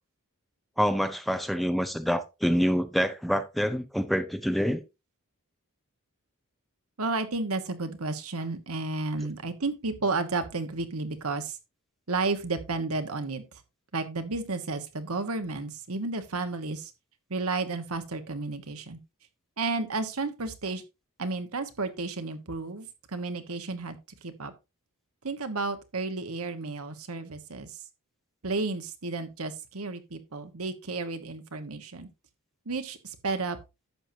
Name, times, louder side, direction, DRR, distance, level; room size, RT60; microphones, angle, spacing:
voice 1, 0.8-4.8, equal, ahead, 0.6 m, -26 dB
voice 2, 7.0-11.6 12.1-13.6 13.9-16.9 17.3-19.0 19.6-20.8 21.2-24.5 25.2-27.8 28.4-32.1 32.6-33.6, right 3 dB, 70° right, 1.3 m, -32 dB
11.0 x 7.6 x 2.8 m
head